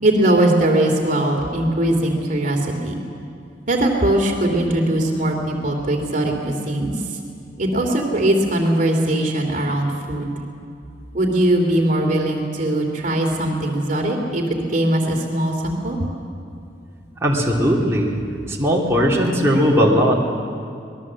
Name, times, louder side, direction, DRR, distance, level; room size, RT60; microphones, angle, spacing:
voice 1, 0.0-3.0 3.7-7.2 7.6-10.3 11.1-16.1, right 1 dB, 45° right, 2 dB, 2.8 m, -20 dB
voice 2, 17.2-18.2 18.5-20.1, equal, 15° right, -4 dB, 2.9 m, -18 dB
26.0 x 20.0 x 7.5 m, 2.5 s
head